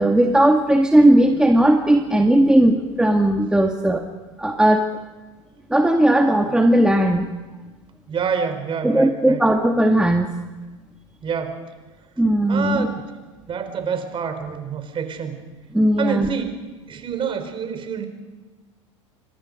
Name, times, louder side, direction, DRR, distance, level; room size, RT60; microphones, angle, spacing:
voice 1, 0.0-4.1 4.4-4.9 5.7-7.3 8.8-10.3 12.2-12.9 15.7-16.3, right 1 dB, 5° right, 4 dB, 1.9 m, -17 dB
voice 2, 8.1-9.4 11.2-11.6 12.5-13.0 13.5-15.4 16.0-16.5 16.9-18.1, right 6 dB, 30° right, 8 dB, 4.1 m, -27 dB
28.0 x 25.0 x 5.2 m, 1.3 s
figure-of-eight pair, 80°, 16 cm